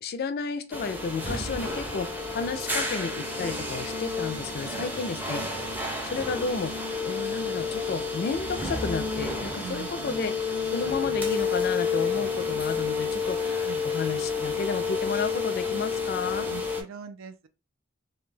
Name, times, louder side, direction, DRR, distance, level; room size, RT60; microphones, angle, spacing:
voice 1, 0.0-5.4 6.0-10.3 10.7-16.5, left 5 dB, 50° left, 0.3 m, -32 dB
sound 1, 0.7-16.8, left 4 dB, 10° right, 0.5 m, -30 dB
voice 2, 5.2-5.5 6.0-6.1 9.6-10.3 13.6-13.8 16.4-17.5, right 7 dB, 80° right, 0.4 m, -43 dB
2.2 x 2.2 x 3.1 m
head